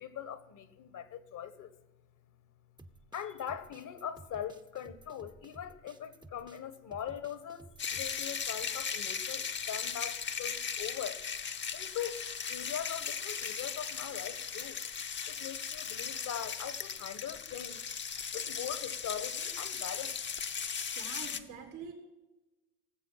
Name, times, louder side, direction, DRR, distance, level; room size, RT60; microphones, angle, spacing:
voice 1, 0.0-1.7 3.1-11.2 11.7-14.8 15.3-17.8 18.3-20.1, left 9 dB, 50° left, 14 dB, 1.3 m, -41 dB
sound 1, 2.8-8.3, right 2 dB, 10° right, 0.8 m, -55 dB
sound 2, 7.8-21.4, left 6 dB, 30° left, 0.8 m, -37 dB
voice 2, 20.9-21.9, right 6 dB, 85° right, 3 dB, 3.1 m, -45 dB
17.5 x 7.8 x 5.7 m, 1.1 s
hypercardioid pair, 65°, 41 cm